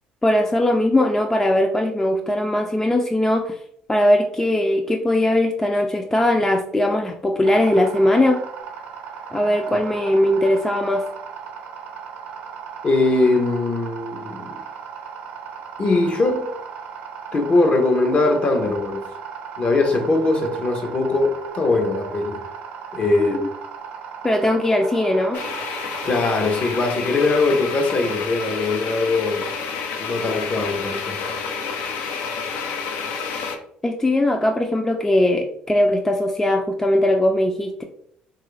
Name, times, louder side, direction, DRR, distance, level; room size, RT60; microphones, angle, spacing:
voice 1, 0.2-3.6 3.9-8.4 9.3-11.1 23.2-23.4 24.2-25.4 33.8-37.8, left 1 dB, 15° left, 0.4 m, -20 dB
sound 1, 7.4-26.9, right 7 dB, 75° right, 0.6 m, -37 dB
voice 2, 12.8-14.6 15.8-16.5 17.3-19.1 19.6-22.4 22.9-23.4 26.0-29.5 30.0-31.3, left 2 dB, 40° left, 0.7 m, -21 dB
sound 2, 25.3-33.6, left 5 dB, 75° left, 0.5 m, -29 dB
3.1 x 2.4 x 3.1 m
supercardioid pair, 80°, 3 cm